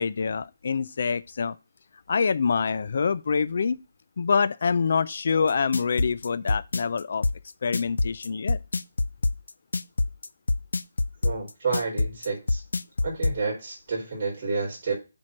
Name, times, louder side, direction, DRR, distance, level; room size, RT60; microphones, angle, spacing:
voice 1, 0.0-1.6 2.1-3.8 4.2-7.2 7.6-8.6, left 5 dB, 45° left, 0.4 m, -25 dB
sound 1, 5.5-13.4, left 2 dB, 85° left, 0.6 m, -25 dB
voice 2, 11.2-12.6 13.0-14.9, right 4 dB, 30° right, 4.1 m, -30 dB
7.5 x 4.4 x 6.4 m
hypercardioid pair, 175°, 0 cm